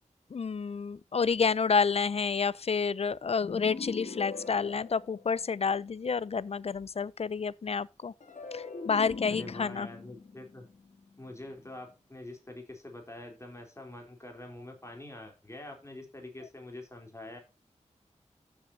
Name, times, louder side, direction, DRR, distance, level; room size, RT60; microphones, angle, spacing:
voice 1, 0.3-8.1 8.5-9.9, left 5 dB, 55° left, 0.5 m, -29 dB
sound 1, 3.4-5.8 8.2-11.5, left 4 dB, 80° left, 2.7 m, -42 dB
voice 2, 9.3-10.7 11.2-17.4, left 1 dB, 20° left, 3.5 m, -45 dB
14.5 x 7.1 x 2.7 m
wide cardioid pair, 80°, 13 cm